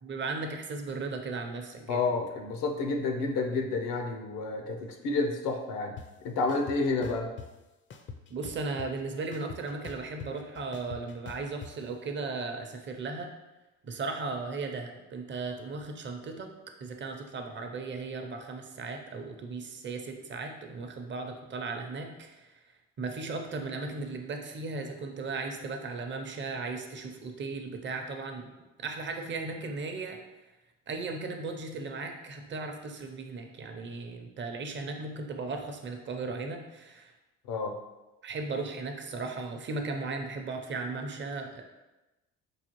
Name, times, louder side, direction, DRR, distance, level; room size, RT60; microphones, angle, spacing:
voice 1, 0.0-2.1 8.3-13.3 13.8-16.5 16.8-22.6 23.0-28.5 28.8-30.2 30.9-37.1 38.2-41.6, right 3 dB, 35° right, 4 dB, 0.6 m, -36 dB
voice 2, 1.9-5.9 6.2-7.3 37.5-37.8, left 3 dB, 80° left, 4 dB, 0.6 m, -30 dB
sound 1, 6.0-6.1 6.5-7.5 7.9-9.0 9.3-11.7, left 5 dB, 35° left, 0.4 m, -43 dB
4.8 x 2.4 x 3.0 m, 1.1 s
supercardioid pair, 85°, 33 cm